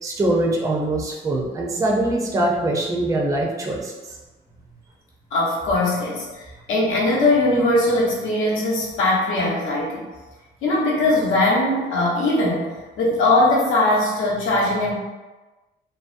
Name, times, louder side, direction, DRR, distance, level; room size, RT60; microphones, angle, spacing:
voice 1, 0.0-3.9, right 1 dB, 15° right, -1 dB, 0.4 m, -22 dB
voice 2, 5.3-10.0 10.6-12.7 13.0-14.9, left 2 dB, 85° left, -4 dB, 0.8 m, -20 dB
2.6 x 2.0 x 2.4 m, 1.2 s
cardioid pair, 90°, 20 cm